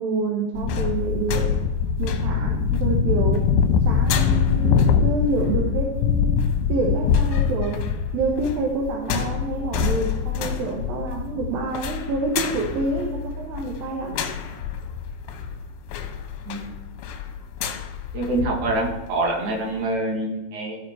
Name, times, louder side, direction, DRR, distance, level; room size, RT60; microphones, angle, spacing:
voice 1, 0.0-1.5 2.0-3.5 3.8-7.8 8.1-14.3, right 3 dB, 90° right, 0 dB, 3.0 m, -27 dB
sound 1, 0.5-18.9 19.4-19.5, left 6 dB, 90° left, 2.7 m, -24 dB
voice 2, 18.1-20.8, right 2 dB, 55° right, -1 dB, 3.2 m, -25 dB
15.0 x 5.2 x 4.7 m, 1.1 s
omnidirectional pair, 4.0 m